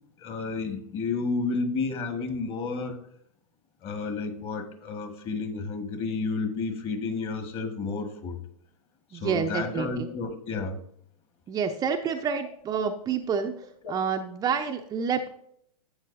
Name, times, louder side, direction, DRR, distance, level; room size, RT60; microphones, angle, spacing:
voice 1, 0.2-3.0 3.8-8.4 9.2-10.8 13.8-13.9, left 4 dB, 30° left, 6 dB, 1.6 m, -31 dB
voice 2, 9.1-10.1 11.5-13.5 13.9-15.3, right 6 dB, 20° right, 4 dB, 0.6 m, -28 dB
12.0 x 8.0 x 2.6 m, 0.69 s
hypercardioid pair, 120°, 19 cm